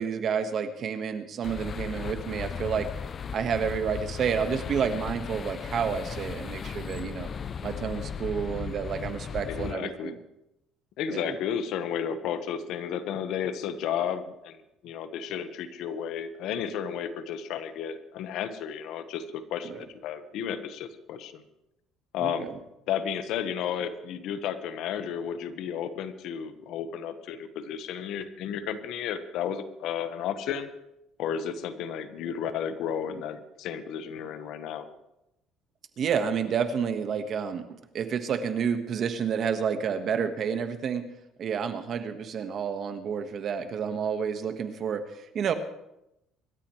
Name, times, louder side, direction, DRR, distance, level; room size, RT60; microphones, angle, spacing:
voice 1, 0.0-2.9 3.3-7.3 7.6-10.2 11.1-11.4 19.6-19.8 22.2-22.5 33.1-33.2 36.0-37.7 37.9-41.1 41.4-45.5, right 7 dB, 45° right, 7 dB, 1.6 m, -30 dB
sound 1, 1.4-9.7, left 6 dB, 35° left, 0.5 m, -36 dB
voice 2, 9.5-10.2 11.0-14.6 14.8-21.4 22.1-22.5 22.9-30.7 31.2-34.9, left 8 dB, 70° left, 9 dB, 1.4 m, -33 dB
25.0 x 13.0 x 3.3 m, 0.87 s
cardioid pair, 120°, 0 cm